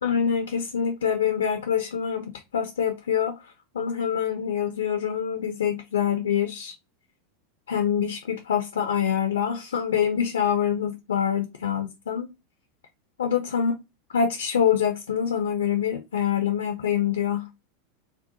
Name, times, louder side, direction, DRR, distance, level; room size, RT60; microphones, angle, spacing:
voice 1, 0.0-3.4 3.7-6.7 7.7-12.3 13.2-13.7 14.1-17.5, left 8 dB, 70° left, 0.3 m, -25 dB
2.7 x 2.1 x 3.6 m
figure-of-eight pair, 85°, 0 cm